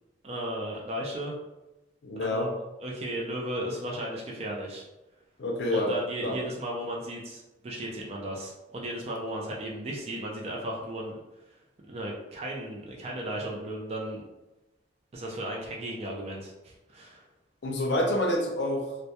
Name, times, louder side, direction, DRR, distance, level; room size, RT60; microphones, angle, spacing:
voice 1, 0.2-1.4 2.2-2.5 2.8-4.8 5.7-11.2 11.9-14.2 15.1-17.2, right 1 dB, 35° right, -2 dB, 0.3 m, -35 dB
voice 2, 2.0-2.5 5.4-5.9 6.2-6.4 17.6-18.9, left 1 dB, 65° left, 1 dB, 0.5 m, -27 dB
2.2 x 2.1 x 2.7 m, 1.0 s
head